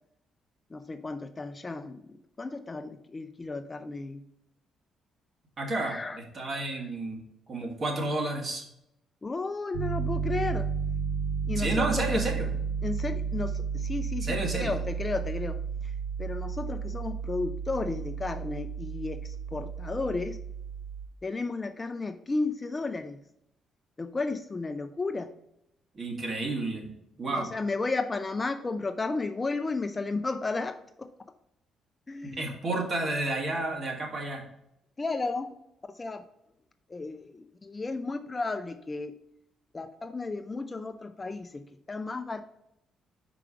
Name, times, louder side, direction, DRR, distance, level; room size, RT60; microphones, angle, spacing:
voice 1, 0.7-4.2 5.8-6.5 9.2-10.7 11.4-12.3 12.8-15.9 16.2-20.4 21.2-23.2 24.0-25.3 27.3-31.1 32.1-32.5 35.0-35.6 35.9-36.2 36.9-39.1 39.7-42.4, left 3 dB, 25° left, 8 dB, 0.5 m, -33 dB
voice 2, 5.6-7.2 7.5-8.6 11.6-12.5 14.2-14.7 25.9-26.9 27.2-27.5 32.2-34.5, right 2 dB, 45° right, 0 dB, 1.9 m, -31 dB
Piano, 9.7-21.1, right 6 dB, 85° right, 0.5 m, -32 dB
4.9 x 4.9 x 4.7 m, 0.79 s
cardioid pair, 90°, 0 cm